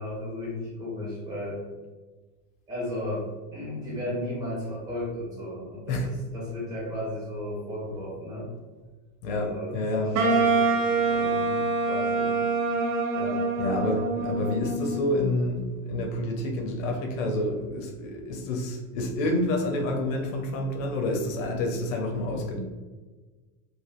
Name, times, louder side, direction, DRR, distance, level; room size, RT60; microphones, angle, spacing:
voice 1, 0.0-1.6 2.7-3.3 3.5-8.5 9.3-12.4 13.1-13.4, left 1 dB, 10° right, -6 dB, 0.5 m, -35 dB
voice 2, 9.2-10.2 13.6-22.6, left 1 dB, 75° left, 2 dB, 0.7 m, -28 dB
Wind instrument woodwind instrument, 10.1-15.2, right 3 dB, 75° right, 0.7 m, -25 dB
3.2 x 2.2 x 2.5 m, 1.3 s
supercardioid pair, 175°, 40 cm